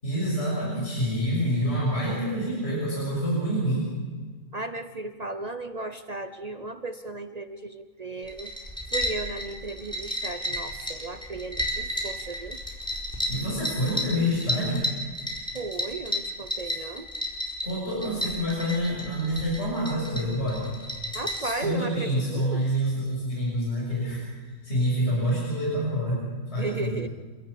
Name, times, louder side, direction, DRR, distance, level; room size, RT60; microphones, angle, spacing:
voice 1, 0.0-3.9 13.3-14.8 16.6-16.8 17.6-20.7 21.4-26.2 26.5-27.0, equal, 50° left, -5 dB, 6.9 m, -27 dB
voice 2, 4.5-8.5 8.9-12.6 15.5-17.1 21.1-22.7 26.6-27.1, right 3 dB, 35° right, 9 dB, 0.7 m, -35 dB
sound 1, 8.2-21.6, equal, 5° left, 4.8 m, -33 dB
30.0 x 13.5 x 8.5 m, 1.4 s
omnidirectional pair, 1.4 m